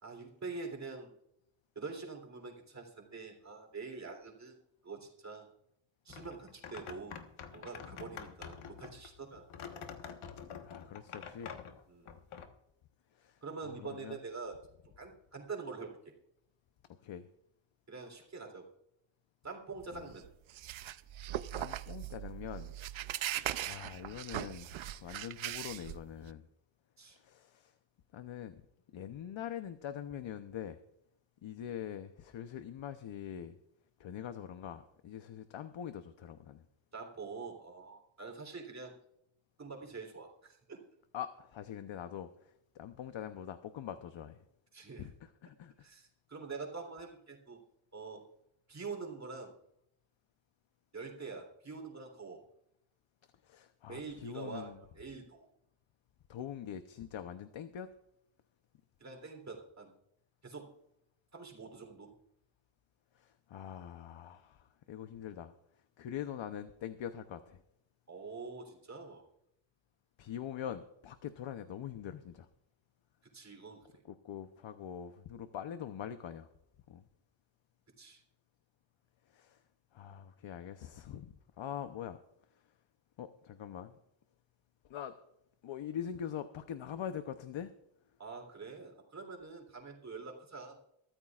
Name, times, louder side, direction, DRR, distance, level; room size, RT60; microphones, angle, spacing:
voice 1, 0.0-1.1 1.7-4.5 4.8-5.5 6.0-7.2 7.5-9.5 11.9-12.2 13.4-14.6 15.0-16.0 17.9-18.7 19.4-20.3 23.0-23.1 27.0-27.2 36.9-38.9 39.6-40.8 44.7-45.1 45.8-47.6 47.9-48.2 48.7-49.5 50.9-52.4 53.9-55.5 59.0-59.9 60.4-60.7 61.3-62.1 68.1-69.2 73.3-73.9 78.0-78.2 88.2-90.8, right 4 dB, 35° right, 3 dB, 3.4 m, -45 dB
sound 1, 6.1-12.5, left 7 dB, 85° left, 1.4 m, -47 dB
voice 2, 10.6-11.5 13.1-14.2 16.9-17.3 19.9-20.1 21.5-22.7 23.2-26.5 27.1-27.7 28.1-28.6 28.9-30.8 31.4-33.6 34.0-36.6 41.1-44.5 45.0-45.9 53.4-54.8 56.3-57.9 63.1-65.5 66.0-67.6 70.2-72.5 74.0-76.5 76.9-77.0 79.3-79.6 79.9-82.2 83.2-84.0 84.8-85.2 85.6-87.7, left 9 dB, 70° left, 9 dB, 0.9 m, -44 dB
sound 2, 19.8-26.3, right 12 dB, 70° right, 0.7 m, -40 dB
23.0 x 13.5 x 2.5 m, 0.79 s
wide cardioid pair, 125°, 48 cm